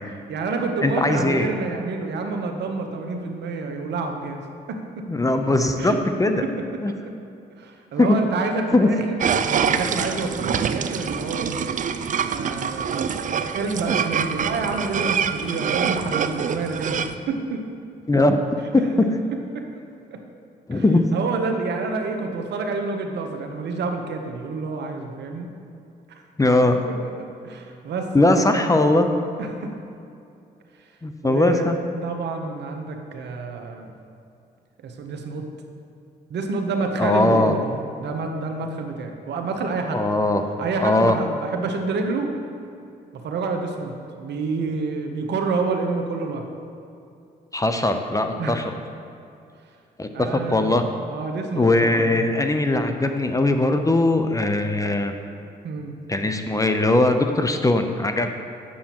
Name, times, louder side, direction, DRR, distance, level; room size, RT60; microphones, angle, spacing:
voice 1, 0.3-4.4 4.7-5.4 5.8-6.0 6.4-6.5 7.1-7.2 7.6-9.2 9.4-11.6 12.3-13.0 13.3-17.7 19.5-19.7 20.1-20.2 20.7-20.8 21.1-25.5 26.1-26.2 26.9-28.7 29.4-29.7 31.2-31.7 32.0-33.9 34.8-35.5 36.3-40.0 40.6-42.3 43.2-46.4 48.4-48.6 50.1-52.4 55.6-55.9, right 3 dB, 70° right, 4 dB, 0.9 m, -28 dB
voice 2, 0.8-1.5 5.1-5.9 6.2-6.4 6.8-6.9 8.0-8.2 8.7-8.9 18.1-18.4 18.7-18.8 20.7-21.1 26.4-26.8 28.1-29.1 31.0-31.8 37.0-37.5 39.9-40.4 40.8-41.1 47.5-48.7 50.0-50.8 51.6-55.1 56.1-58.3, left 2 dB, 20° left, 6 dB, 0.6 m, -20 dB
sound 1, 9.2-17.2, right 7 dB, 45° right, 0.4 m, -25 dB
8.6 x 7.0 x 2.9 m, 2.6 s
supercardioid pair, 55°, 19 cm